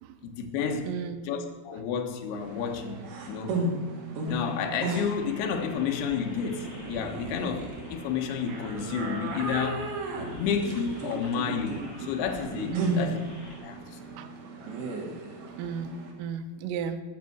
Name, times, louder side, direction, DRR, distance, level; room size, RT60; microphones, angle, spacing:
voice 1, 0.2-0.9 1.3-3.6 4.3-9.9 10.4-13.2 13.6-14.2, left 6 dB, 70° left, 2.7 m, -31 dB
voice 2, 0.9-1.3 1.7-1.8 3.5-3.6 9.0-9.1 12.7-13.2 14.2-14.3 15.5-15.9 16.2-17.0, right 7 dB, 90° right, 3.4 m, -34 dB
sound 1, 2.4-16.1, right 2 dB, 55° right, 3.6 m, -35 dB
sound 2, 4.3-13.5, left 1 dB, 20° left, 2.7 m, -47 dB
20.0 x 6.8 x 6.1 m
omnidirectional pair, 5.8 m